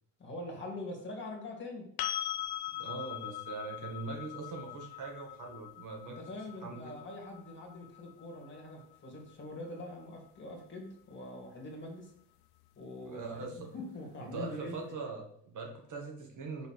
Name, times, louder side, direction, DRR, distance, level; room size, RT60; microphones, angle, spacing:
voice 1, 0.2-1.9 6.1-12.1 12.8-14.8, left 2 dB, 30° left, 0 dB, 2.2 m, -44 dB
sound 1, 2.0-9.8 12.6-12.7, left 12 dB, 80° left, 0.6 m, -42 dB
voice 2, 2.7-6.3 6.6-7.0 13.1-13.7 14.2-16.7, right 4 dB, 55° right, 1 dB, 1.9 m, -42 dB
5.9 x 4.2 x 5.9 m, 0.69 s
cardioid pair, 120°, 38 cm